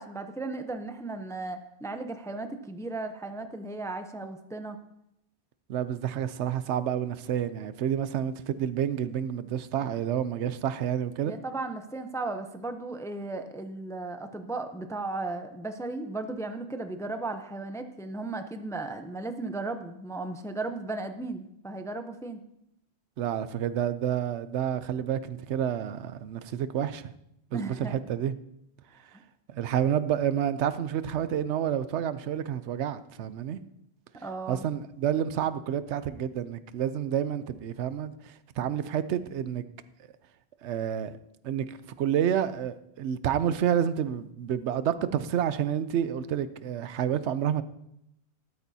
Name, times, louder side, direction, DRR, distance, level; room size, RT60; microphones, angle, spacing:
voice 1, 0.0-4.8 11.2-22.4 27.5-28.0 29.1-29.2 34.2-34.7, right 2 dB, 5° left, 0.5 m, -35 dB
voice 2, 5.7-11.3 23.2-27.1 27.5-28.3 29.5-33.6 34.5-39.6 40.6-41.2 41.4-47.6, right 9 dB, 85° right, 0.9 m, -29 dB
13.0 x 12.5 x 2.8 m
omnidirectional pair, 1.1 m